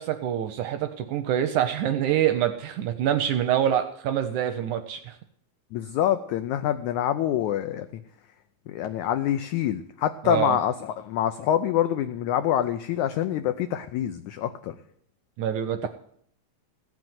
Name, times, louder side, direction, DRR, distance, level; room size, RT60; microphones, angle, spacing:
voice 1, 0.0-5.2 10.2-10.6 15.4-15.9, right 10 dB, 75° right, 9 dB, 1.8 m, -25 dB
voice 2, 5.7-7.9 8.7-14.8, left 11 dB, 85° left, 9 dB, 1.7 m, -26 dB
16.0 x 6.0 x 9.4 m, 0.67 s
omnidirectional pair, 4.2 m